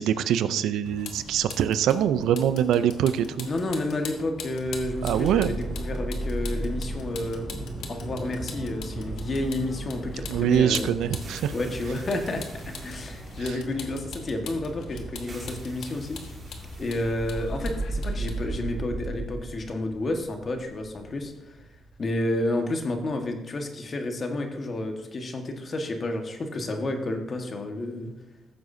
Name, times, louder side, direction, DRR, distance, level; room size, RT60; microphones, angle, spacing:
voice 1, 0.0-3.5 5.0-5.5 10.3-11.5, right 9 dB, 85° right, 13 dB, 0.5 m, -24 dB
Vehicle, 0.8-18.8, left 5 dB, 75° left, 1.3 m, -42 dB
voice 2, 3.4-7.5 7.9-10.9 11.5-16.2 16.8-21.6 22.0-28.1, left 1 dB, 40° left, 4 dB, 1.5 m, -30 dB
sound 1, 4.7-22.7, right 2 dB, 35° right, 2.4 m, -36 dB
14.5 x 7.7 x 2.7 m, 0.99 s
cardioid pair, 90°, 0 cm